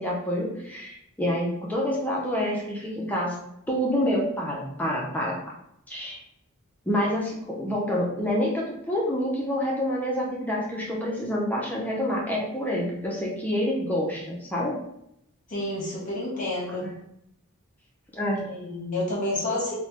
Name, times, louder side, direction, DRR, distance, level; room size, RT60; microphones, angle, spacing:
voice 1, 0.0-3.4 3.7-5.4 5.9-6.2 6.9-14.8 16.8-16.9 18.1-18.4, equal, 5° left, -4 dB, 0.4 m, -27 dB
voice 2, 15.5-16.9 18.5-19.7, left 1 dB, 35° left, -5 dB, 0.7 m, -29 dB
3.2 x 2.0 x 2.8 m, 0.78 s
head